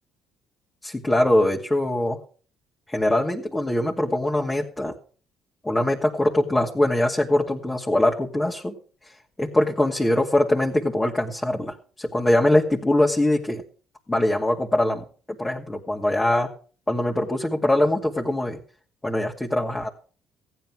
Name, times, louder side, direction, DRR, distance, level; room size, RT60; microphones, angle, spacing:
voice 1, 0.8-2.2 2.9-4.9 5.6-8.7 9.4-13.6 14.1-15.0 15.4-16.5 16.9-18.6 19.0-19.9, left 1 dB, 15° left, -1 dB, 2.3 m, -22 dB
15.0 x 9.4 x 6.1 m, 0.42 s
supercardioid pair, 65°, 0 cm